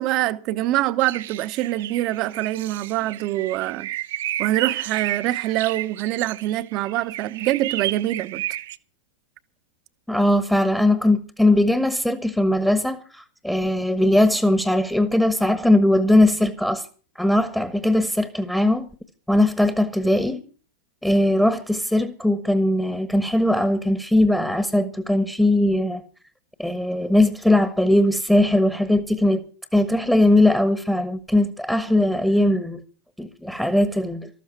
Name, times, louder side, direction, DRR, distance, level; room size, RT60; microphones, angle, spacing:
voice 1, 0.0-3.9 4.4-8.4, right 15 dB, 40° right, 1.0 m, -24 dB
sound 1, 1.0-8.8, right 13 dB, 55° right, 0.7 m, -32 dB
voice 2, 10.1-16.9 17.2-18.9 19.3-20.4 21.0-26.0 26.6-29.4 29.7-32.8 33.2-34.3, left 1 dB, 5° left, 1.3 m, -20 dB
13.5 x 13.5 x 5.9 m
figure-of-eight pair, 90°, 0 cm